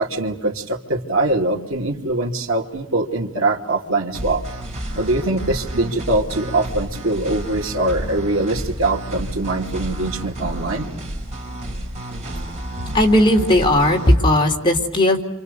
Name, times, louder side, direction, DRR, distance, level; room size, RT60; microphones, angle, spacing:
voice 1, 0.0-4.4 4.9-10.9, right 2 dB, 80° right, 2 dB, 2.5 m, -22 dB
sound 1, 4.1-14.1, right 1 dB, 35° right, 5.1 m, -30 dB
voice 2, 12.9-15.2, left 1 dB, 25° left, 1 dB, 3.5 m, -16 dB
29.0 x 27.0 x 6.8 m, 0.86 s
head